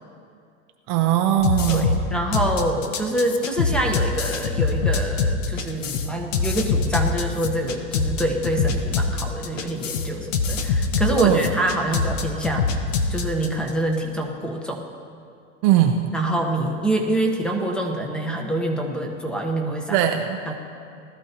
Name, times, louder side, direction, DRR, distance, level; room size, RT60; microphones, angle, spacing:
voice 1, 0.9-2.0 11.2-11.5 15.6-16.1 19.9-20.4, right 11 dB, 35° right, 5 dB, 0.6 m, -20 dB
sound 1, 1.4-13.7, left 4 dB, 75° left, 1.2 m, -24 dB
voice 2, 1.7-12.7 13.1-14.8 16.1-20.0 20.5-20.6, right 1 dB, ahead, 2 dB, 1.0 m, -26 dB
19.0 x 13.0 x 2.9 m, 2.4 s
hypercardioid pair, 140°, 38 cm